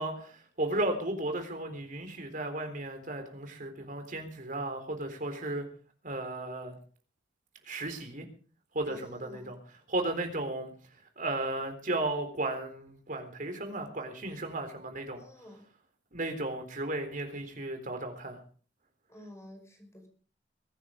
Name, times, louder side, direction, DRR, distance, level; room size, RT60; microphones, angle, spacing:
voice 1, 0.0-5.7 6.0-6.7 7.7-8.3 8.7-10.7 11.2-15.2 16.1-18.4, right 2 dB, 45° right, 6 dB, 3.9 m, -35 dB
voice 2, 8.9-9.5 15.2-15.6 19.1-20.1, left 1 dB, 15° left, 4 dB, 5.5 m, -50 dB
23.0 x 10.0 x 5.1 m, 0.42 s
head